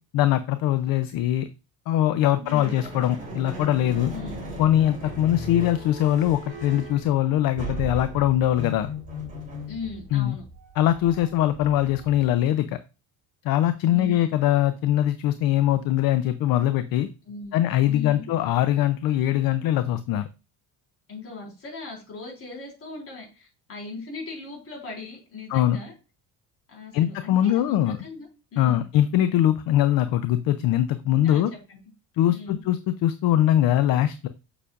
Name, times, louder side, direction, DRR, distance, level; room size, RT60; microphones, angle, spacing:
voice 1, 0.1-1.5 1.9-4.1 4.6-8.9 10.1-10.4 10.8-12.8 13.4-17.1 17.5-20.3 25.5-25.8 26.9-28.0 28.6-31.5 32.2-34.3, left 12 dB, 60° left, 11 dB, 0.6 m, -22 dB
voice 2, 2.4-2.8 4.1-4.4 9.7-10.4 13.9-14.3 17.3-17.6 17.9-18.2 21.1-25.9 26.7-28.8 31.2-31.8 32.3-32.6, left 3 dB, 35° left, -1 dB, 4.1 m, -38 dB
sound 1, 2.5-12.6, equal, 20° right, 3.2 m, -37 dB
6.9 x 6.7 x 2.4 m, 0.31 s
cardioid pair, 140°, 39 cm